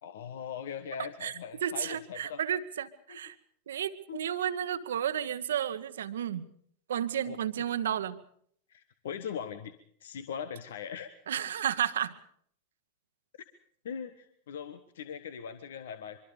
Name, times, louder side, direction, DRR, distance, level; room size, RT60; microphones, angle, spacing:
voice 1, 0.0-2.4 3.1-3.2 4.1-4.2 7.2-7.4 8.7-9.7 10.0-11.1 13.8-16.2, left 7 dB, 60° left, 12 dB, 1.3 m, -40 dB
voice 2, 1.6-3.3 3.7-6.4 6.9-8.2 11.3-12.1, right 9 dB, 65° right, 12 dB, 1.3 m, -32 dB
24.5 x 24.5 x 5.1 m, 0.64 s
figure-of-eight pair, 90°, 0 cm